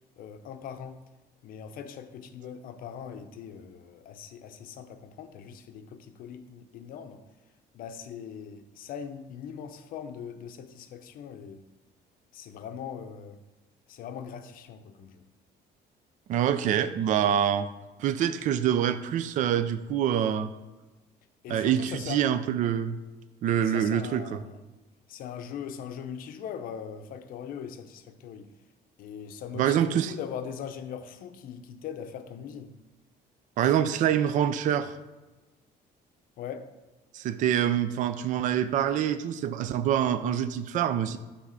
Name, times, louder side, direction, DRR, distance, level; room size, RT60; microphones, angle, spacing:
voice 1, 0.2-1.0 1.4-7.2 7.7-11.6 12.3-13.4 13.9-15.2 21.4-22.2 23.6-24.6 25.1-28.5 29.0-32.7 33.6-33.7 36.4-36.7, left 8 dB, 55° left, 8 dB, 0.6 m, -40 dB
voice 2, 16.3-17.7 18.0-20.5 21.5-23.0 23.4-24.4 29.5-30.1 33.6-34.9 37.1-41.2, right 9 dB, 50° right, 12 dB, 0.4 m, -25 dB
7.2 x 3.5 x 5.6 m, 1.2 s
cardioid pair, 165°, 17 cm